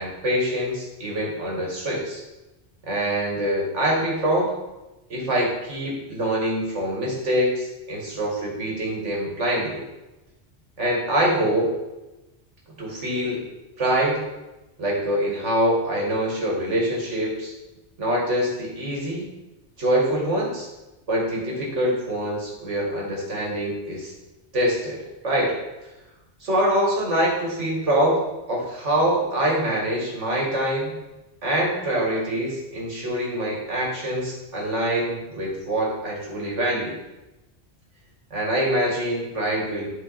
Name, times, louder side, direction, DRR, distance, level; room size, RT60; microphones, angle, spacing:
voice 1, 0.0-2.2 2.9-4.5 5.1-9.8 10.8-11.8 12.8-13.4 13.8-14.2 14.8-17.5 18.0-19.3 19.8-20.7 21.1-24.1 24.5-25.6 26.4-28.2 28.5-30.9 31.4-37.0 38.3-39.9, right 1 dB, 85° right, -2 dB, 2.3 m, -24 dB
11.5 x 4.6 x 4.2 m, 1.0 s
omnidirectional pair, 1.2 m